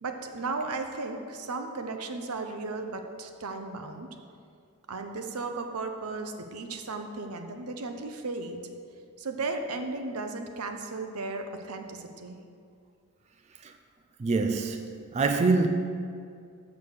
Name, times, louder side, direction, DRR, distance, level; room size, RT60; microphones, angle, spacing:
voice 1, 0.0-4.1 4.9-8.6 9.2-12.4, right 3 dB, 85° right, 0.8 m, -35 dB
voice 2, 14.2-15.7, right 3 dB, 30° right, 0.3 m, -25 dB
7.1 x 6.3 x 6.6 m
head